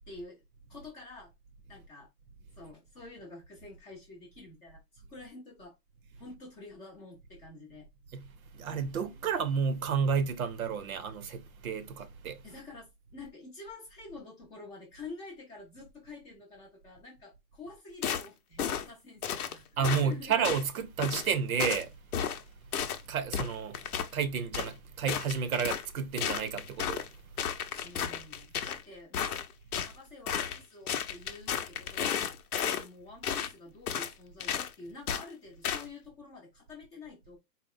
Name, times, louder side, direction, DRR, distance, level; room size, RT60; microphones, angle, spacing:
voice 1, 0.1-0.4 0.7-1.3 1.7-2.1 2.6-5.7 6.2-7.9 12.4-20.4 27.8-29.4 29.8-32.4 32.6-37.4, left 3 dB, 15° left, 0.6 m, -48 dB
voice 2, 8.1-12.4 19.8-21.9 23.1-23.8 24.1-27.1, right 6 dB, 60° right, 0.7 m, -31 dB
sound 1, 18.0-18.3 18.6-18.9 19.2-19.5 19.8-20.0 20.4-20.7 21.0-21.3 21.6-21.8 22.1-22.4 22.7-23.0 23.3-24.1 24.5-24.7 25.1-25.9 26.2-27.1 27.4-28.8 29.1-29.9 30.3-30.6 30.9-32.8 33.2-33.5 33.9-34.1 34.4-34.7 35.1-35.2 35.6-35.8, left 8 dB, 60° left, 0.8 m, -33 dB
4.2 x 2.0 x 3.7 m
hypercardioid pair, 150°, 49 cm